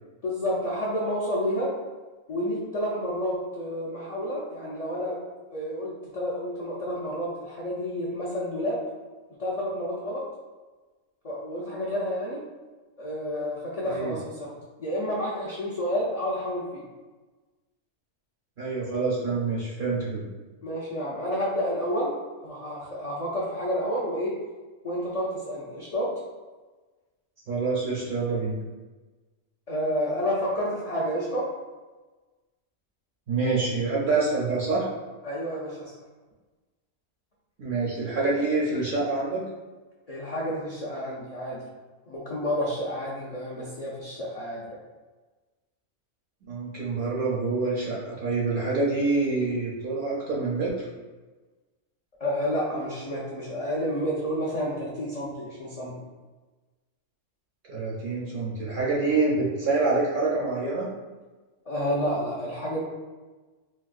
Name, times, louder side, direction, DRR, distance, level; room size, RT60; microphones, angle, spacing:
voice 1, 0.2-1.7 2.3-5.2 5.5-8.8 9.4-10.2 11.2-12.4 13.0-14.5 14.8-16.8 20.6-22.2 22.4-24.4 24.8-26.1 29.7-31.5 35.2-35.9 40.1-41.6 42.1-44.8 52.2-55.9 61.7-62.8, equal, 60° left, -7 dB, 0.3 m, -30 dB
voice 2, 18.6-20.3 27.5-28.6 33.3-34.9 37.6-39.5 46.5-50.7 57.7-60.9, right 3 dB, 60° right, -5 dB, 0.5 m, -26 dB
4.0 x 2.2 x 2.4 m, 1.3 s
omnidirectional pair, 1.4 m